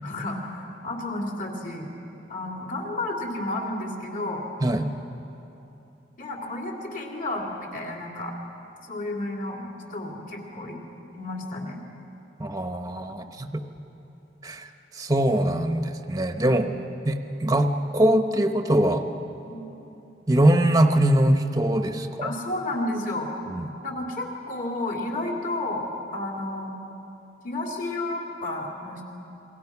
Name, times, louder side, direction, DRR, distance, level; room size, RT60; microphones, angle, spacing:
voice 1, 0.0-1.9 2.3-4.4 6.2-8.3 8.9-10.8 11.1-11.8 19.5-19.6 22.2-23.3 23.8-26.7 27.4-29.0, left 2 dB, 45° left, 0 dB, 3.2 m, -31 dB
voice 2, 12.4-13.6 14.4-14.7 15.0-16.7 17.0-19.0 20.3-22.3 23.5-23.7, right 1 dB, 20° right, 6 dB, 0.9 m, -22 dB
28.5 x 22.5 x 6.0 m, 2.9 s
head